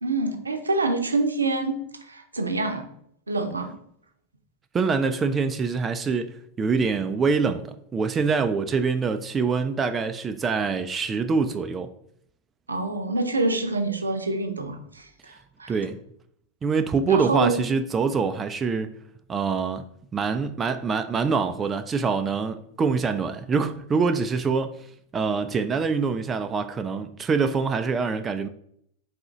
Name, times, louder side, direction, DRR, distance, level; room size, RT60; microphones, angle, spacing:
voice 1, 0.0-1.8 2.1-2.9 3.3-3.7 12.7-15.3 15.6-15.8 17.1-17.7, right 2 dB, 75° right, 0.6 m, -26 dB
voice 2, 4.7-11.9 15.7-16.0 16.6-18.9 19.3-19.8 20.1-24.8 25.1-28.5, right 5 dB, 20° right, 0.3 m, -25 dB
3.9 x 3.8 x 2.9 m
figure-of-eight pair, 90°, 0 cm